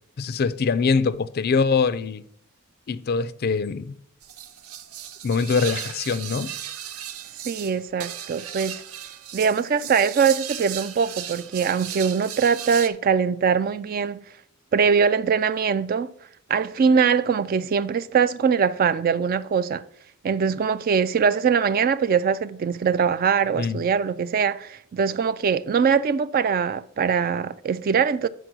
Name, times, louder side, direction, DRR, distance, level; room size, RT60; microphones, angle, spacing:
voice 1, 0.2-2.2 2.9-4.0 5.2-6.5 23.6-23.8, left 5 dB, 45° left, 0.4 m, -23 dB
sound 1, 4.2-12.9, right 10 dB, 75° right, 0.7 m, -36 dB
voice 2, 7.4-8.8 9.3-14.2 14.7-16.1 16.5-19.8 20.2-28.3, right 6 dB, 40° right, 0.3 m, -22 dB
9.1 x 4.7 x 6.0 m
head